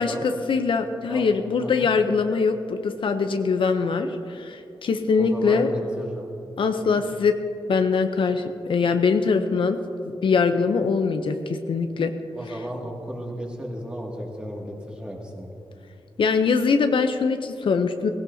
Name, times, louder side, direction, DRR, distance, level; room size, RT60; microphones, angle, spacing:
voice 1, 0.0-5.7 6.6-7.3 7.7-9.8 10.2-12.1 16.2-18.1, left 5 dB, 65° left, 7 dB, 0.7 m, -22 dB
voice 2, 1.5-1.9 5.2-6.3 6.8-7.0 12.3-15.5, equal, 10° right, -2 dB, 2.2 m, -34 dB
17.0 x 16.5 x 2.8 m, 2.6 s
wide cardioid pair, 130°, 9 cm